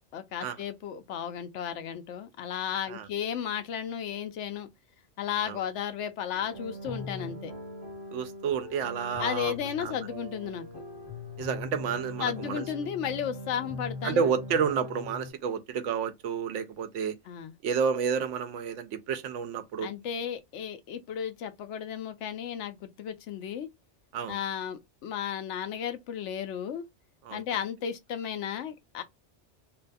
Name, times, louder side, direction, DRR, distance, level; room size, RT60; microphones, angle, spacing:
voice 1, 0.1-4.7 5.2-7.5 9.2-10.7 12.2-14.3 17.3-17.5 19.8-23.7 24.3-26.9 27.3-29.0, left 8 dB, 80° left, 0.9 m, -34 dB
sound 1, 6.3-15.3, left 2 dB, 20° left, 1.2 m, -41 dB
voice 2, 8.1-9.5 9.8-10.0 11.4-12.6 14.0-17.1 17.6-19.9 24.1-24.4 27.2-27.4, right 6 dB, 90° right, 0.9 m, -30 dB
2.7 x 2.2 x 2.5 m
omnidirectional pair, 1.2 m